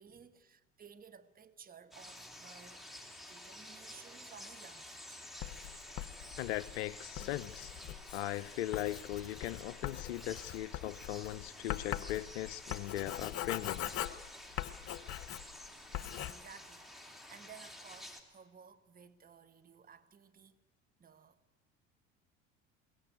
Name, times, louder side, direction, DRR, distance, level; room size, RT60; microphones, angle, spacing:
voice 1, 0.0-5.2 14.5-14.7 16.3-20.6 21.0-21.4, right 7 dB, 25° right, 1.2 m, -57 dB
sound 1, 1.9-18.2, left 1 dB, ahead, 2.8 m, -51 dB
sound 2, 3.6-11.7, right 5 dB, 75° right, 5.8 m, -67 dB
Writing, 5.4-15.6 15.9-16.3, left 12 dB, 40° left, 0.9 m, -42 dB
voice 2, 6.4-7.7 8.1-13.9, left 14 dB, 60° left, 0.6 m, -39 dB
21.5 x 17.5 x 9.4 m
figure-of-eight pair, 65°, 37 cm